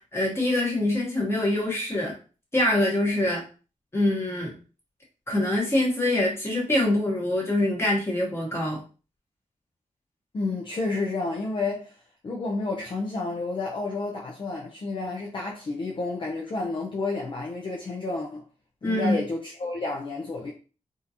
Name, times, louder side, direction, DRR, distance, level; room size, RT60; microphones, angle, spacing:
voice 1, 0.1-2.1 2.5-3.4 3.9-4.5 5.3-8.8 18.8-19.2, left 1 dB, 20° left, 1.2 m, -24 dB
voice 2, 10.3-11.9 12.2-18.4 18.8-20.5, left 3 dB, 40° left, 0.5 m, -30 dB
3.7 x 2.5 x 2.8 m
wide cardioid pair, 170°, 13 cm